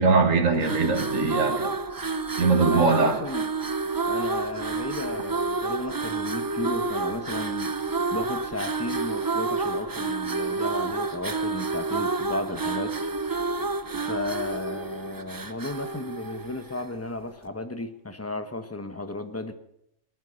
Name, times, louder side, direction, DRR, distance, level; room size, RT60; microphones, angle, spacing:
voice 1, 0.0-1.7 2.4-3.2, right 4 dB, 80° right, 5 dB, 2.0 m, -21 dB
sound 1, 0.5-17.0, right 3 dB, 25° right, 0.4 m, -29 dB
voice 2, 2.7-3.5 4.1-7.7 8.1-13.1 13.9-19.5, left 2 dB, 10° left, 9 dB, 1.0 m, -34 dB
18.5 x 12.0 x 6.4 m, 0.76 s
omnidirectional pair, 1.3 m